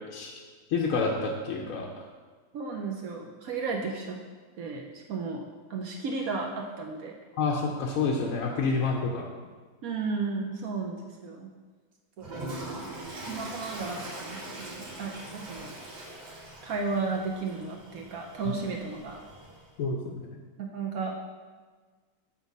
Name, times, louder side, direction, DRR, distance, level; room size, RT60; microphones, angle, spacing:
voice 1, 0.7-1.9 7.4-9.3 19.8-20.4, left 4 dB, 65° left, 0 dB, 0.9 m, -28 dB
voice 2, 2.5-4.2 4.6-5.4 5.7-7.2 9.8-11.5 12.2-12.3 13.3-15.7 16.6-19.2 20.6-21.2, right 4 dB, 65° right, 0 dB, 1.0 m, -34 dB
Toilet flush, 12.2-19.7, right 1 dB, 85° right, 1.9 m, -42 dB
7.2 x 3.7 x 5.3 m, 1.4 s
omnidirectional pair, 1.8 m